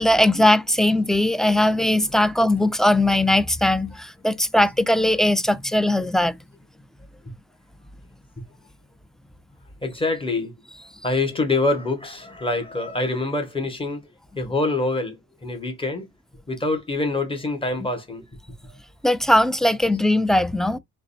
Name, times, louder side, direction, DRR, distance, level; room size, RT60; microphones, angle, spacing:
voice 1, 0.0-6.3 19.0-20.8, left 1 dB, ahead, 0.3 m, -19 dB
voice 2, 9.8-10.5 11.0-14.0 14.4-16.1 16.5-18.2, left 2 dB, 15° left, 1.8 m, -25 dB
3.9 x 3.2 x 2.7 m
cardioid pair, 90°, 30 cm